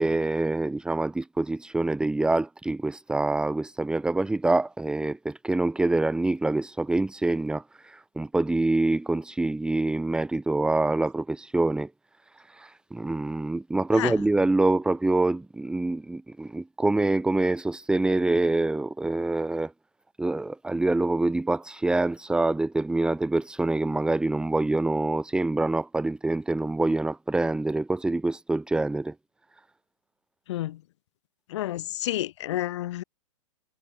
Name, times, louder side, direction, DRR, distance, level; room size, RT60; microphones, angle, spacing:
voice 1, 0.0-11.9 12.5-19.7 20.2-29.1, right 2 dB, 5° right, 1.8 m, -25 dB
voice 2, 30.5-30.8 31.5-33.0, left 14 dB, 60° left, 4.0 m, -30 dB
hypercardioid pair, 125°, 17 cm